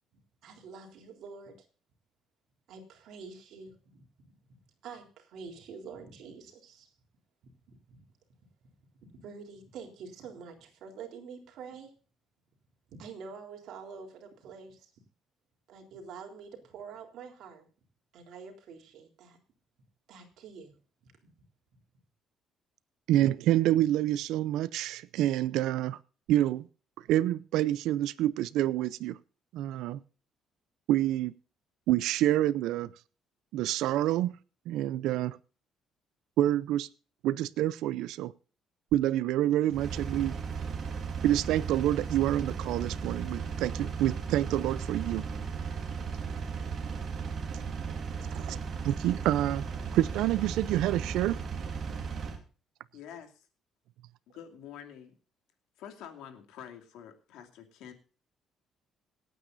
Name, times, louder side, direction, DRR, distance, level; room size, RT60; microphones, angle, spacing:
voice 1, 0.4-1.7 2.7-4.0 4.8-6.9 7.7-8.0 9.1-11.9 12.9-14.9 15.7-17.7 18.1-19.4 20.1-20.8 21.0-21.3, right 5 dB, 65° right, 3.7 m, -47 dB
voice 2, 23.1-26.0 26.3-26.7 27.1-29.2 29.5-30.0 30.9-31.3 31.9-32.9 33.5-34.4 34.7-35.4 36.4-36.9 37.2-38.3 38.9-40.4 41.2-45.3 48.3-48.6 48.8-49.7 49.9-51.4, right 13 dB, 85° right, 0.5 m, -27 dB
Engine, 39.7-52.4, right 5 dB, 40° right, 2.5 m, -36 dB
voice 3, 52.9-53.3 54.3-55.1 55.8-57.9, left 9 dB, 90° left, 2.7 m, -47 dB
26.0 x 9.2 x 2.6 m
cardioid pair, 155°, 0 cm